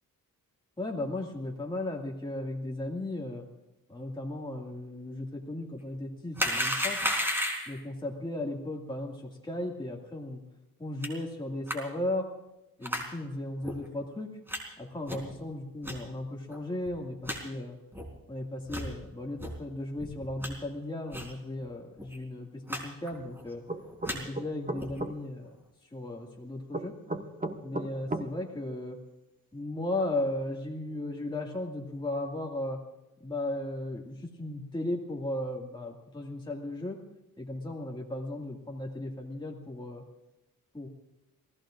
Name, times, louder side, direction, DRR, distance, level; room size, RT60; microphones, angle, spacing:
voice 1, 0.8-3.4 3.9-7.0 7.7-10.4 10.8-12.3 12.8-14.3 14.8-17.8 18.3-23.6 24.1-25.5 25.9-26.9 27.6-29.0 29.5-32.8 33.2-37.0 37.4-40.0 40.7-40.9, left 1 dB, 15° left, -1 dB, 2.1 m, -36 dB
sound 1, 6.4-7.8 11.0-11.1 11.7-11.8 12.8-13.1 13.6-13.7 14.5-14.6 15.1-15.3 15.8-15.9 16.5-16.6 16.9-17.0 17.2-17.4 17.9-18.1 18.6-18.9 19.4-19.5 20.0-20.5 21.1-21.3 21.6-21.7 22.0-22.2 22.7-22.8 23.1-23.4 23.8-24.2 24.8-25.0, equal, 5° right, 3.8 m, -32 dB
sound 2, 23.7-25.1 26.7-28.3, right 2 dB, 25° right, 1.4 m, -34 dB
28.5 x 18.5 x 2.6 m, 0.96 s
wide cardioid pair, 145°, 35 cm